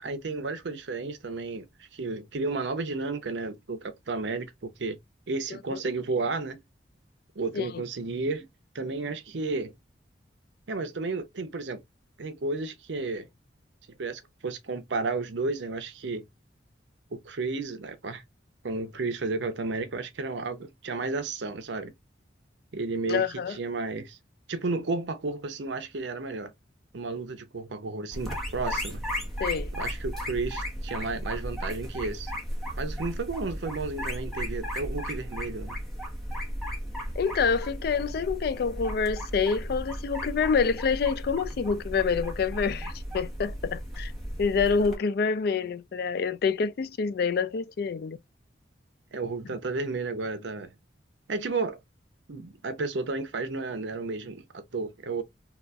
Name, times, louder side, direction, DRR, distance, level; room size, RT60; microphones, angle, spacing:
voice 1, 0.0-1.7 1.9-5.0 5.3-6.6 7.4-8.5 8.7-9.7 10.7-11.8 12.2-13.3 14.0-16.3 17.1-18.2 18.6-21.9 22.7-24.2 24.5-26.5 26.9-29.0 29.8-32.3 32.8-35.8 49.1-50.7 51.3-51.8 52.3-55.2, right 3 dB, 75° right, 0.6 m, -32 dB
voice 2, 23.1-23.6 29.4-29.7 37.2-44.1 44.4-48.2, left 5 dB, 55° left, 0.3 m, -27 dB
sound 1, 28.1-44.9, equal, ahead, 0.9 m, -35 dB
3.9 x 2.3 x 2.3 m
head